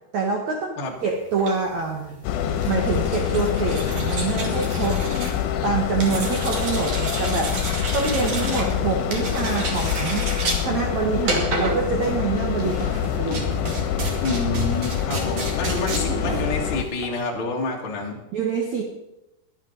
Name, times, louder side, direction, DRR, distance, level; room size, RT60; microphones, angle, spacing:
voice 1, 0.1-2.2 2.7-5.0 5.6-7.5 7.9-10.3 10.6-13.8 18.3-18.8, right 5 dB, 90° right, 0 dB, 1.6 m, -26 dB
sound 1, 1.2-17.2, right 3 dB, 45° right, 2.6 m, -31 dB
sound 2, 2.2-16.9, left 9 dB, 75° left, 3.3 m, -26 dB
voice 2, 14.2-18.2, left 3 dB, 45° left, 0 dB, 1.8 m, -28 dB
22.5 x 8.9 x 4.1 m, 0.89 s
omnidirectional pair, 5.9 m